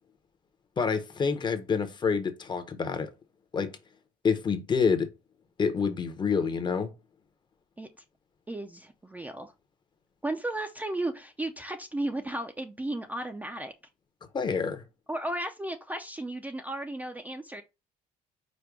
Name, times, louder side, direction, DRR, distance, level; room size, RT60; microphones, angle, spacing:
voice 1, 0.8-3.1 3.5-3.8 4.2-5.1 5.6-6.9 14.3-14.8, left 5 dB, 30° left, 0.7 m, -27 dB
voice 2, 8.5-9.5 10.2-13.7 15.1-17.6, right 1 dB, 10° right, 0.4 m, -34 dB
5.1 x 2.1 x 4.6 m
cardioid pair, 130°, 16 cm